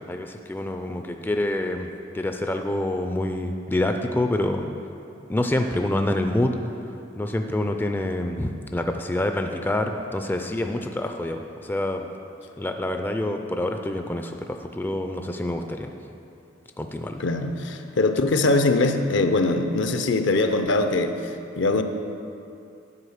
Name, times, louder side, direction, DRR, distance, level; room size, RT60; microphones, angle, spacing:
voice 1, 0.1-1.9 2.1-4.7 5.3-6.5 7.2-12.1 12.6-15.9 16.8-17.2, left 1 dB, 10° left, 5 dB, 0.3 m, -27 dB
voice 2, 17.2-21.1 21.6-21.8, left 2 dB, 65° left, 7 dB, 0.6 m, -22 dB
9.8 x 4.6 x 6.5 m, 2.6 s
head